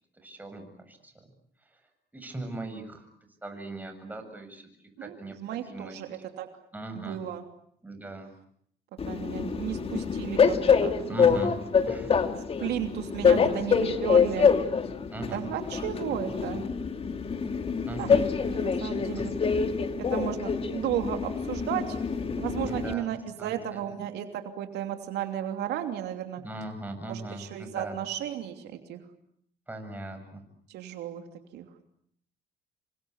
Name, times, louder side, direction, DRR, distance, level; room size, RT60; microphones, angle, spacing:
voice 1, 0.2-1.2 2.1-3.1 3.4-4.7 5.0-6.0 6.7-7.2 7.8-8.3 11.1-11.5 11.9-12.2 15.1-15.4 17.9-18.2 22.6-23.9 26.4-28.0 29.7-30.4, right 2 dB, 10° right, 5 dB, 7.5 m, -39 dB
voice 2, 5.0-6.5 6.9-7.4 9.1-11.5 12.6-14.5 15.3-16.6 18.0-18.1 18.4-19.3 20.0-22.0 22.4-26.4 27.1-29.0 30.7-31.2 31.5-31.7, right 11 dB, 80° right, 6 dB, 3.0 m, -34 dB
Train, 9.0-22.9, left 6 dB, 35° left, 2.5 m, -26 dB
28.0 x 25.0 x 8.1 m, 0.67 s
cardioid pair, 110°, 17 cm